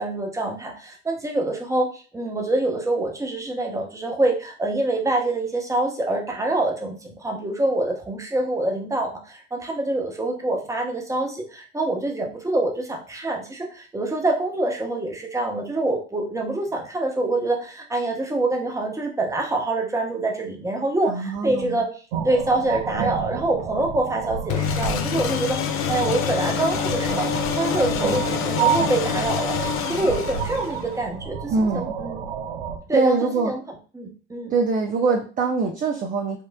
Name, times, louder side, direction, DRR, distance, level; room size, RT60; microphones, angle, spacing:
voice 1, 0.0-21.9 22.2-29.6 29.9-32.2 32.9-33.2 33.4-33.6 33.9-34.5, right 2 dB, 10° right, 1 dB, 0.9 m, -25 dB
voice 2, 21.1-21.8 31.5-32.0 32.9-33.5 34.5-36.4, right 4 dB, 25° right, 2 dB, 0.5 m, -23 dB
sound 1, 22.1-32.8, right 7 dB, 80° right, 0.6 m, -30 dB
sound 2, 24.5-31.0, left 8 dB, 45° left, 0.5 m, -26 dB
4.4 x 2.4 x 2.3 m, 0.38 s
hypercardioid pair, 75°, 32 cm